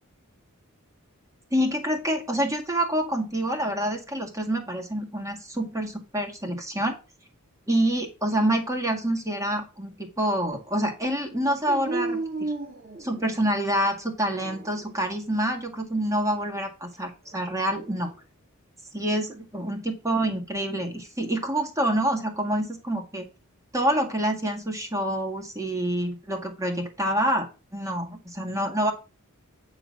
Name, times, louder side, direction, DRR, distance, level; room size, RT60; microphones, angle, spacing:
voice 1, 1.5-7.0 7.7-12.5 13.0-18.1 18.9-23.2 23.7-28.9, right 1 dB, 15° right, 2 dB, 1.8 m, -27 dB
Dog, 11.7-13.6 14.2-15.0 17.3-18.1, right 2 dB, 40° right, 2.5 m, -34 dB
9.1 x 4.0 x 7.1 m, 0.31 s
head